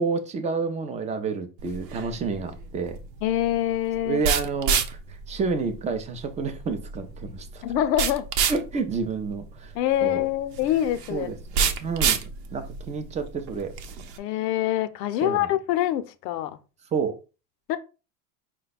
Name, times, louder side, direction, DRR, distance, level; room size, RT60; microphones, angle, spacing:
voice 1, 0.0-3.0 4.1-5.0 5.3-7.6 8.5-9.7 10.0-10.2 11.1-13.7 15.2-15.5 16.9-17.2, right 4 dB, 15° right, 0.4 m, -29 dB
sound 1, 1.6-14.2, right 6 dB, 85° right, 0.8 m, -30 dB
voice 2, 3.2-4.2 7.6-8.3 9.7-11.3 11.6-11.7 14.2-16.6 17.7-17.8, left 12 dB, 85° left, 0.7 m, -25 dB
5.0 x 2.2 x 4.0 m
supercardioid pair, 120°, 48 cm